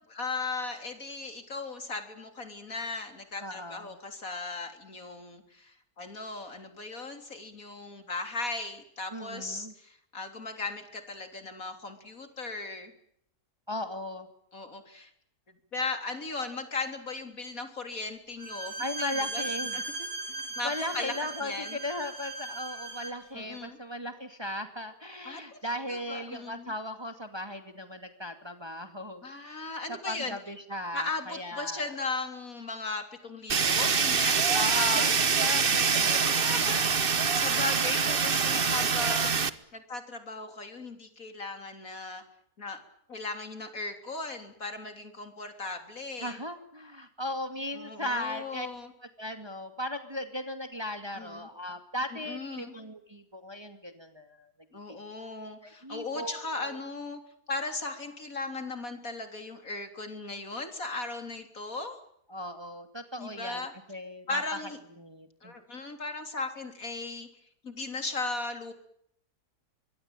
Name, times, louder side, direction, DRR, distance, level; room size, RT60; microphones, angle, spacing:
voice 1, 0.1-12.9 14.5-15.1 15.7-19.5 19.7-19.8 20.6-21.1 21.4-21.8 23.3-23.8 25.3-25.6 25.9-26.7 29.2-30.4 30.9-35.1 35.9-42.2 42.6-42.8 43.1-46.4 47.7-48.9 51.1-51.5 52.3-52.7 54.7-57.2 57.5-62.0 63.2-63.7 64.3-64.8 65.4-67.3 67.6-68.7, left 3 dB, 55° left, 7 dB, 3.9 m, -37 dB
voice 2, 3.4-3.9 9.1-9.7 13.7-14.3 18.8-19.8 20.3-31.9 34.5-35.1 35.4-36.7 37.7-37.8 38.5-39.0 46.2-48.7 49.2-54.5 54.9-55.0 55.6-56.8 62.3-63.6 63.9-64.4 65.0-65.5, left 1 dB, 15° right, 8 dB, 2.4 m, -37 dB
Bowed string instrument, 18.4-23.2, right 3 dB, 85° right, 4.9 m, -37 dB
Fire, 33.5-39.5, right 5 dB, 40° right, 1.2 m, -25 dB
25.0 x 22.0 x 9.1 m, 0.70 s
omnidirectional pair, 1.7 m